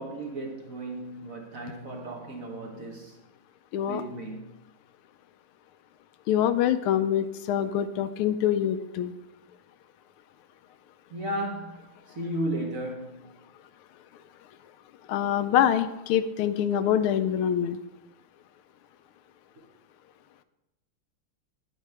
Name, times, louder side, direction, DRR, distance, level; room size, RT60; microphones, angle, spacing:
voice 1, 0.0-3.2 3.8-4.5 11.1-13.3, right 1 dB, 50° right, 1.2 m, -35 dB
voice 2, 6.3-9.1 15.1-17.8, left 10 dB, 80° left, 1.4 m, -25 dB
9.3 x 8.8 x 3.3 m
omnidirectional pair, 2.3 m